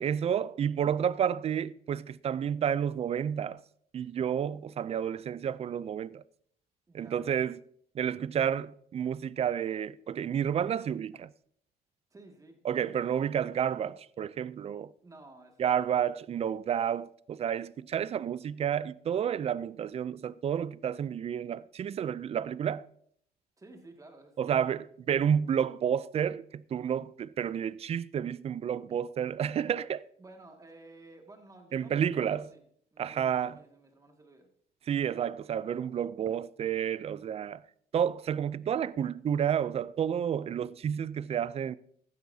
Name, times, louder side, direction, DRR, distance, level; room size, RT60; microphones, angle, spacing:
voice 1, 0.0-3.6 3.9-6.2 6.9-7.6 7.9-11.3 12.6-14.9 15.6-22.9 24.4-30.1 31.7-32.5 33.0-33.6 34.9-37.6 37.9-41.8, right 8 dB, 35° right, 0.4 m, -30 dB
voice 2, 6.9-7.5 12.1-12.9 15.0-16.1 23.6-24.7 30.2-32.6 32.9-34.5, right 2 dB, 20° right, 2.1 m, -54 dB
15.5 x 12.0 x 2.8 m
cardioid pair, 110°, 17 cm